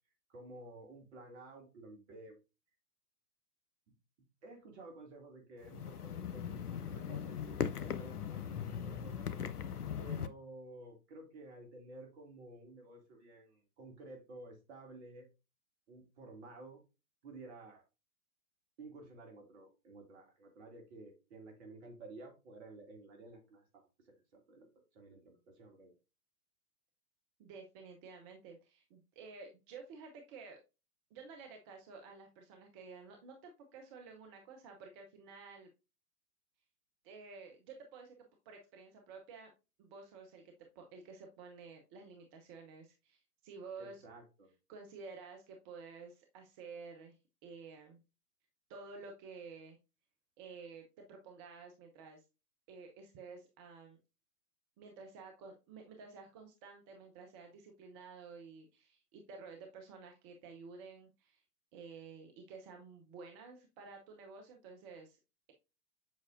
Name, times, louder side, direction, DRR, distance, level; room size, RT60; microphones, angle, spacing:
voice 1, 0.3-2.4 4.4-9.3 10.0-15.3 15.9-16.8 17.2-17.8 18.8-25.9 43.8-44.5, right 2 dB, 45° right, 3 dB, 2.5 m, -53 dB
sound 1, 5.6-10.3, left 8 dB, 75° left, 0.7 m, -39 dB
voice 2, 27.4-30.6 31.1-35.7 37.0-38.2 38.5-39.5 39.8-44.0 44.7-48.0 48.7-49.8 50.4-52.2 52.7-54.0 54.8-61.4 61.7-65.2, right 4 dB, 20° right, 3 dB, 0.6 m, -52 dB
7.5 x 5.4 x 2.5 m, 0.28 s
figure-of-eight pair, 115°, 46 cm